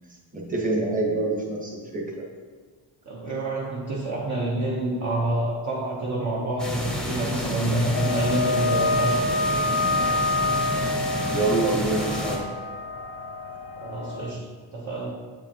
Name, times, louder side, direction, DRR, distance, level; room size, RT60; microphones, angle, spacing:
voice 1, 0.3-2.2 11.2-12.5, right 2 dB, 15° right, -2 dB, 1.3 m, -26 dB
voice 2, 3.1-9.7 13.8-15.1, right 2 dB, 40° right, -5 dB, 0.9 m, -28 dB
sound 1, 6.6-12.4, left 1 dB, ahead, 0.8 m, -30 dB
sound 2, 7.9-14.3, left 2 dB, 60° left, 0.6 m, -27 dB
8.3 x 7.0 x 2.9 m, 1.5 s
cardioid pair, 155°, 46 cm